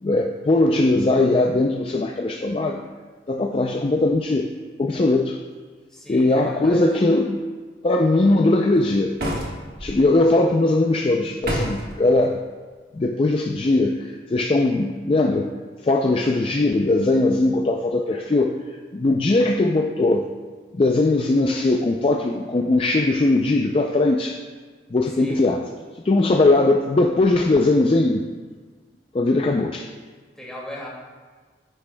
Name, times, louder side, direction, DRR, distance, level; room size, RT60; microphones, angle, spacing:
voice 1, 0.0-2.8 3.3-4.5 4.8-5.4 6.1-7.4 7.8-9.1 9.8-12.4 12.9-15.5 15.8-18.6 18.9-20.3 20.8-24.4 24.9-25.6 26.0-28.2 29.1-29.9, left 2 dB, 30° left, 2 dB, 0.4 m, -20 dB
voice 2, 5.9-6.8 25.2-25.4 30.4-30.9, left 1 dB, 5° left, -5 dB, 2.1 m, -37 dB
sound 1, 9.2-9.9 11.4-11.9, equal, 55° right, 1.4 m, -27 dB
9.7 x 9.4 x 2.2 m, 1.4 s
head